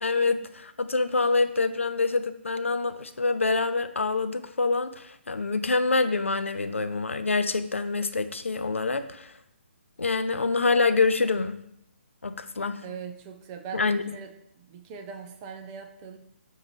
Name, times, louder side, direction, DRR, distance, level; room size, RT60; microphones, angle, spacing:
voice 1, 0.0-9.3 10.0-11.6 12.2-12.8 13.7-14.1, left 3 dB, 80° left, 10 dB, 0.4 m, -26 dB
voice 2, 12.8-16.2, right 6 dB, 20° right, 5 dB, 0.4 m, -41 dB
6.7 x 2.7 x 3.0 m, 0.76 s
figure-of-eight pair, 140°, 7 cm